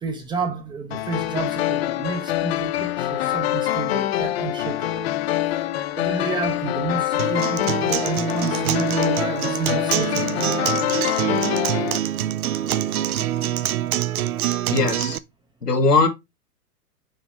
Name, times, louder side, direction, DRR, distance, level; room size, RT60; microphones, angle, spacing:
voice 1, 0.0-5.1 5.7-10.8, right 4 dB, 10° right, 0.7 m, -30 dB
sound 1, 0.9-12.0, left 13 dB, 45° left, 0.6 m, -25 dB
Acoustic guitar, 7.2-15.2, right 11 dB, 65° right, 0.6 m, -25 dB
voice 2, 14.7-15.2 15.6-16.1, left 3 dB, 85° left, 1.8 m, -19 dB
6.3 x 5.1 x 3.1 m
figure-of-eight pair, 110°, 46 cm